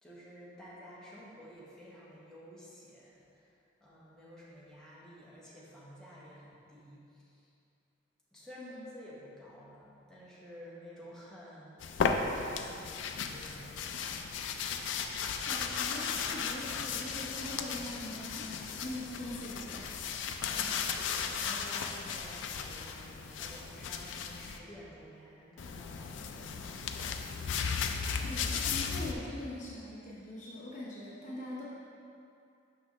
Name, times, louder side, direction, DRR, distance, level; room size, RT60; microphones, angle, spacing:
voice 1, 0.0-7.5 8.3-14.7 20.4-21.0 21.3-27.4, equal, 5° left, -8 dB, 1.1 m, -51 dB
voice 2, 8.6-8.9 15.4-20.1 28.2-31.6, left 1 dB, 40° left, -6 dB, 0.8 m, -42 dB
sound 1, 11.8-24.6 25.6-29.1, left 6 dB, 70° left, 0.4 m, -35 dB
6.1 x 6.0 x 3.1 m, 2.6 s
head